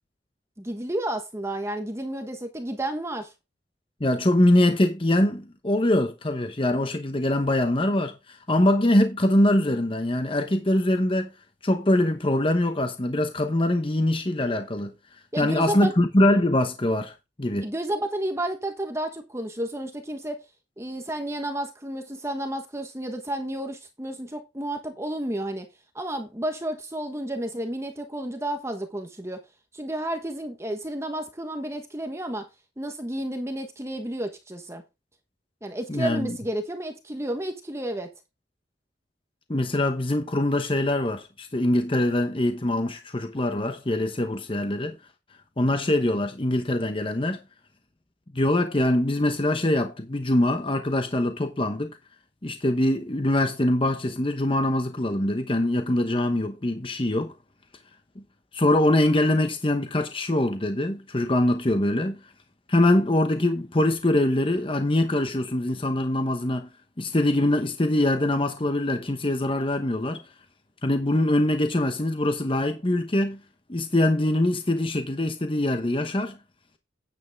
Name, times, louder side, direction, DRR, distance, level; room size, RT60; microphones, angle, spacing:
voice 1, 0.6-3.3 15.3-15.9 17.6-20.4 20.8-25.7 25.9-29.4 29.7-32.5 32.8-34.8 35.6-38.1, right 1 dB, 15° right, 1.2 m, -31 dB
voice 2, 4.0-11.3 11.6-14.9 15.4-17.7 35.9-36.4 39.5-44.9 45.6-47.4 48.3-52.0 52.4-57.3 58.5-62.2 62.7-66.7 67.0-70.2 70.8-73.4 73.7-76.4, left 1 dB, 30° left, 0.9 m, -23 dB
9.7 x 8.1 x 3.5 m
head